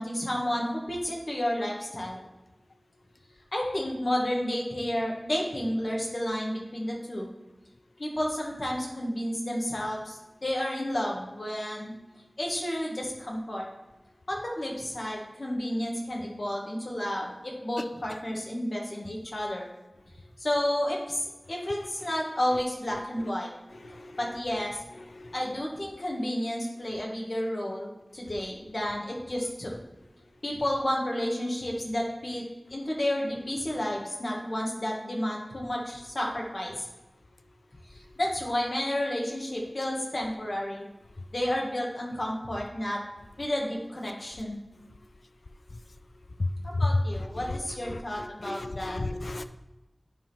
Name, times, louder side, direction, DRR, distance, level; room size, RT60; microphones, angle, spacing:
voice 1, 0.0-2.2 3.5-7.3 8.0-11.9 12.4-13.7 14.3-19.7 20.4-23.5 24.2-24.8 25.3-29.8 30.4-36.9 37.9-40.9 41.3-43.0 43.4-44.6 46.6-49.0, left 1 dB, 65° left, -2 dB, 1.8 m, -31 dB
voice 2, 23.8-24.2 25.1-25.3 46.4-46.5 47.2-47.6 47.8-48.0 48.4-49.4, left 2 dB, 80° left, 10 dB, 0.4 m, -34 dB
10.0 x 3.7 x 4.4 m, 1.0 s
wide cardioid pair, 50°, 0 cm